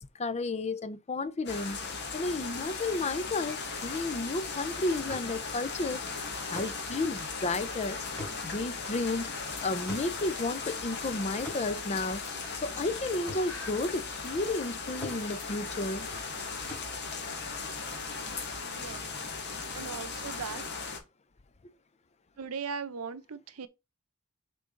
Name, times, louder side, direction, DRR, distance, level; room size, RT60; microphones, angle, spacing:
voice 1, 0.0-1.8 2.1-6.0 6.5-8.0 8.4-9.3 9.6-12.2 12.6-16.1, left 2 dB, 30° left, 0.5 m, -32 dB
sound 1, 1.5-21.0, left 4 dB, 50° left, 1.6 m, -37 dB
saz birds active, 2.7-15.9, left 4 dB, 75° left, 2.6 m, -54 dB
sound 2, 5.1-14.8 15.0-18.0, left 2 dB, 10° left, 3.5 m, -47 dB
voice 2, 18.6-19.0 19.7-20.6 22.4-23.7, right 5 dB, 80° right, 0.7 m, -38 dB
6.6 x 3.8 x 3.8 m
head